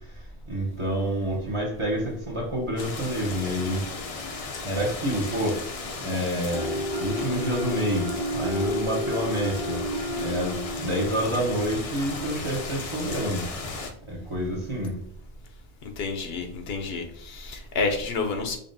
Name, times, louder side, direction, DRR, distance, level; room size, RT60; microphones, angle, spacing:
voice 1, 0.5-3.8 4.6-5.6 6.0-9.8 10.2-13.4 14.3-14.9, equal, 30° right, -3 dB, 0.8 m, -28 dB
sound 1, 2.8-13.9, left 3 dB, 50° left, 0.4 m, -36 dB
sound 2, 6.5-12.3, left 1 dB, 65° right, 1.5 m, -32 dB
voice 2, 15.8-18.6, left 4 dB, 70° left, 5 dB, 0.8 m, -29 dB
5.2 x 2.3 x 2.6 m, 0.64 s
omnidirectional pair, 1.1 m